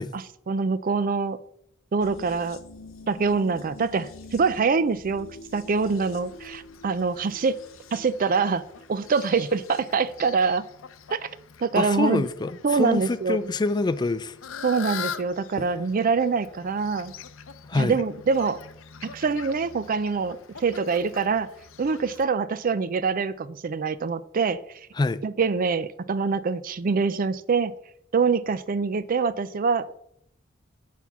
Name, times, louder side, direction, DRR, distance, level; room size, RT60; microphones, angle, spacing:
voice 1, 0.1-1.4 1.9-2.6 3.1-5.3 5.5-7.6 7.9-8.6 8.9-10.6 11.1-11.3 11.6-12.3 12.6-13.5 14.6-17.1 17.7-18.6 19.0-21.5 21.8-24.6 25.2-27.7 28.1-30.0, right 5 dB, 45° right, 0.4 m, -25 dB
sound 1, 2.0-9.9 10.2-10.3, left 2 dB, 90° left, 1.1 m, -47 dB
Fowl, 5.9-22.2, left 7 dB, 70° left, 0.6 m, -43 dB
voice 2, 11.8-14.4 15.6-15.7 17.7-18.0 25.0-25.2, left 3 dB, 20° left, 0.3 m, -26 dB
9.1 x 4.2 x 5.9 m
head